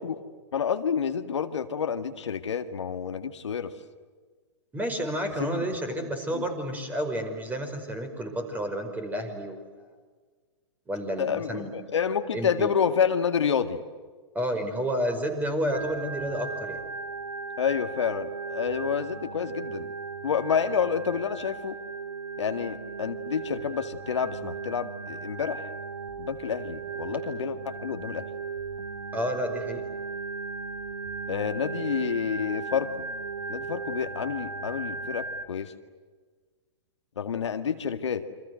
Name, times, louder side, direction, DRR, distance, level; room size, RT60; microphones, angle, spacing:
voice 1, 0.5-3.7 5.4-5.6 5.9-6.0 6.3-6.5 11.2-13.8 17.6-19.9 20.2-21.8 22.4-25.7 26.2-28.3 31.3-32.9 33.5-35.7 37.2-38.3, left 7 dB, 75° left, 7 dB, 2.0 m, -29 dB
voice 2, 4.7-9.6 10.9-11.8 12.3-12.7 14.3-16.8 29.1-29.8, equal, 10° right, 6 dB, 5.3 m, -30 dB
Organ, 15.7-35.4, right 4 dB, 75° right, 3.4 m, -37 dB
28.5 x 25.5 x 7.8 m, 1.5 s
hypercardioid pair, 120°, 15 cm